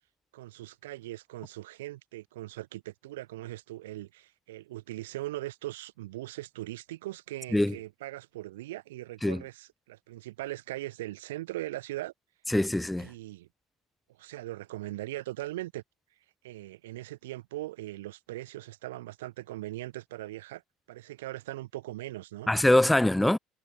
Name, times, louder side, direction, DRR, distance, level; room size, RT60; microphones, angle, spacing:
voice 1, 0.3-12.1 13.0-13.5 14.2-15.8 16.4-20.6 20.9-22.5, right 16 dB, 90° right, 1.1 m, -40 dB
voice 2, 12.5-13.1 22.5-23.4, left 1 dB, 5° left, 0.4 m, -23 dB
hypercardioid pair, 80°, 0 cm